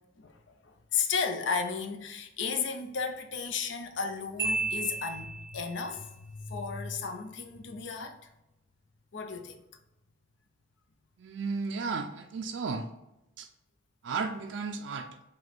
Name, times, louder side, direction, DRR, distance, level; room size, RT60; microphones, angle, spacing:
voice 1, 0.6-8.2 9.1-9.6, left 5 dB, 65° left, 0.5 m, -34 dB
Marimba xylophone, 4.4-5.8, right 3 dB, 10° right, 1.2 m, -33 dB
voice 2, 11.2-12.9 13.4-13.5 14.0-15.1, right 4 dB, 65° right, 0.3 m, -34 dB
4.8 x 2.2 x 4.1 m
head